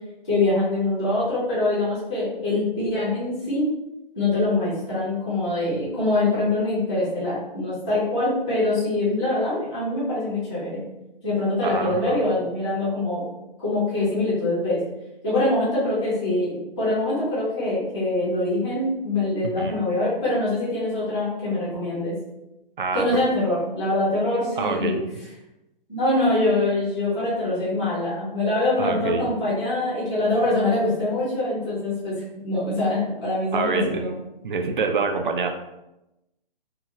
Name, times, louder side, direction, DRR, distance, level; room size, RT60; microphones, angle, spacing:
voice 1, 0.2-3.6 4.1-10.8 11.2-13.2 13.6-14.8 15.2-22.1 22.9-25.0 25.9-32.2 32.4-34.1, left 2 dB, 5° left, -11 dB, 0.4 m, -24 dB
voice 2, 11.6-12.2 19.4-19.7 22.8-23.1 24.6-25.0 28.8-29.3 33.5-34.1 34.4-35.5, right 4 dB, 60° right, 5 dB, 0.4 m, -26 dB
2.8 x 2.3 x 2.9 m, 0.93 s
hypercardioid pair, 165°, 29 cm